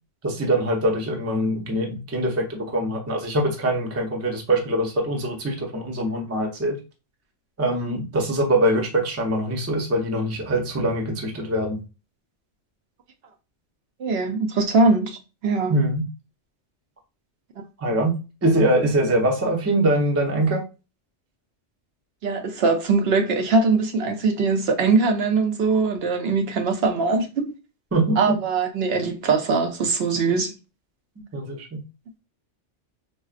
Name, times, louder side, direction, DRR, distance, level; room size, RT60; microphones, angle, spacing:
voice 1, 0.2-6.8 7.6-11.8 15.7-16.1 17.8-20.6 27.9-28.4 31.3-31.8, right 1 dB, 20° right, 0.4 m, -23 dB
voice 2, 14.0-15.2 15.4-15.8 17.6-17.7 22.2-27.5 28.2-30.5, right 4 dB, 65° right, 0.7 m, -21 dB
3.8 x 2.1 x 2.4 m
omnidirectional pair, 1.2 m